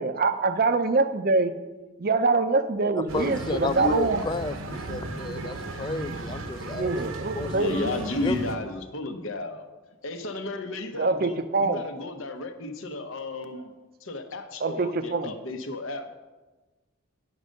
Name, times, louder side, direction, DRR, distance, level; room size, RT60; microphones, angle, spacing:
voice 1, 0.0-1.5 2.0-4.2 6.7-7.8 10.9-11.8 14.6-15.3, right 3 dB, 45° right, 0.5 m, -24 dB
voice 2, 2.9-7.0 7.3-7.8 8.2-8.5, left 3 dB, 20° left, 0.3 m, -32 dB
sound 1, 3.1-8.6, right 2 dB, 70° right, 0.8 m, -35 dB
voice 3, 7.5-9.6 10.0-13.7 14.0-16.1, left 2 dB, 70° left, 0.9 m, -33 dB
9.8 x 5.3 x 6.4 m
head